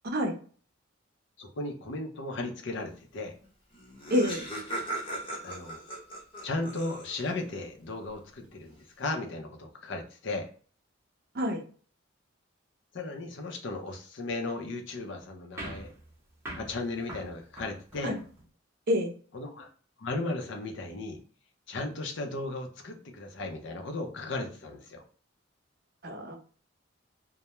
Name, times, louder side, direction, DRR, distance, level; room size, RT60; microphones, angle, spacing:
voice 1, 1.4-3.3 5.4-5.8 6.4-10.5 12.9-15.9 16.5-18.1 19.3-19.7 20.0-21.2 21.7-25.0, left 2 dB, 60° left, 3 dB, 0.5 m, -36 dB
Laughter, 3.4-3.5 3.7-7.4, right 1 dB, 25° left, 0.7 m, -38 dB
voice 2, 4.1-4.5 11.3-11.6 18.0-18.2 18.9-19.1 26.0-26.3, equal, 50° right, 3 dB, 0.6 m, -27 dB
sound 1, 15.6-18.5, right 1 dB, 15° right, 0.7 m, -44 dB
2.2 x 2.0 x 2.9 m, 0.43 s
head